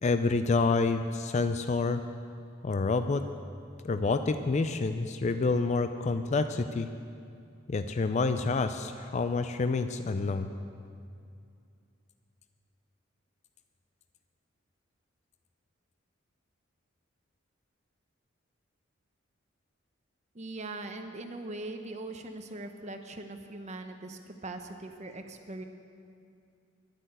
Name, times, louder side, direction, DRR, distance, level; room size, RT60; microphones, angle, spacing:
voice 1, 0.0-2.0 2.6-3.2 3.8-6.9 7.7-10.5, left 3 dB, 35° left, 9 dB, 0.4 m, -28 dB
voice 2, 20.3-25.6, right 2 dB, 35° right, 6 dB, 0.9 m, -41 dB
11.5 x 9.9 x 7.9 m, 2.5 s
head